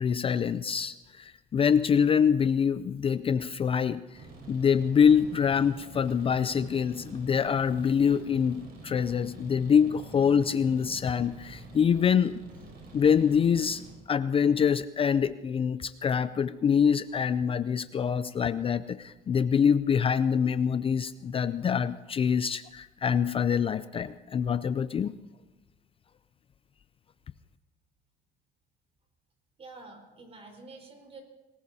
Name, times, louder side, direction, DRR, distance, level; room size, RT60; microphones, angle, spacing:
voice 1, 0.0-4.0 4.5-12.4 12.9-13.8 14.1-25.1, left 7 dB, 35° left, 14 dB, 0.4 m, -25 dB
sound 1, 4.1-13.9, right 2 dB, 70° right, 5.6 m, -47 dB
voice 2, 29.6-31.2, right 3 dB, 35° right, 2 dB, 4.5 m, -48 dB
25.5 x 19.5 x 2.8 m, 1.2 s
cardioid pair, 110°, 17 cm